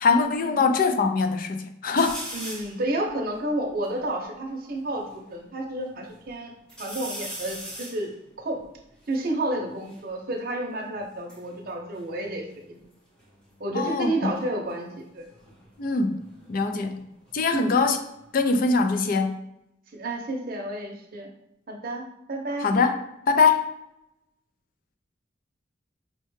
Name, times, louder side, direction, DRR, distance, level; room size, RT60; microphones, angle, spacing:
voice 1, 0.0-2.2 13.7-14.3 15.8-16.2 16.5-17.0 17.3-18.0 18.3-19.4 22.6-22.9 23.3-23.6, left 4 dB, 45° left, 7 dB, 0.4 m, -22 dB
sound 1, 2.0-2.8 3.4-3.5 3.6-5.2 5.7-6.3 6.7-10.1 11.0-12.9 13.2-13.7 15.2-17.9 18.2-19.0, right 1 dB, 5° left, 0.8 m, -42 dB
voice 2, 2.3-6.5 6.8-8.1 8.4-8.6 9.1-12.8 13.6-15.3 17.5-17.7 19.9-21.3 21.7-22.0 22.3-22.7, right 1 dB, 50° right, 1 dB, 0.7 m, -30 dB
5.5 x 2.2 x 3.1 m, 0.83 s
head